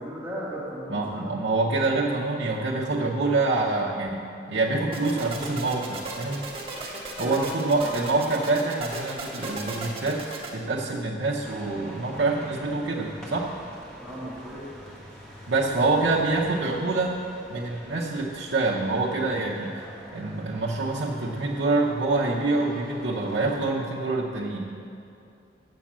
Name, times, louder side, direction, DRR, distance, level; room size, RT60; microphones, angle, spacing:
voice 1, 0.0-1.2 7.2-7.9 14.0-14.7, equal, 10° right, -7 dB, 1.7 m, -36 dB
voice 2, 0.9-6.5 7.2-13.5 15.5-17.2 17.5-19.7 20.1-24.7, right 3 dB, 90° right, -4 dB, 0.8 m, -26 dB
sound 1, 4.9-10.5, right 2 dB, 30° right, 1.4 m, -36 dB
sound 2, 11.4-23.7, equal, 5° left, 1.6 m, -46 dB
7.7 x 7.4 x 7.3 m, 2.6 s
head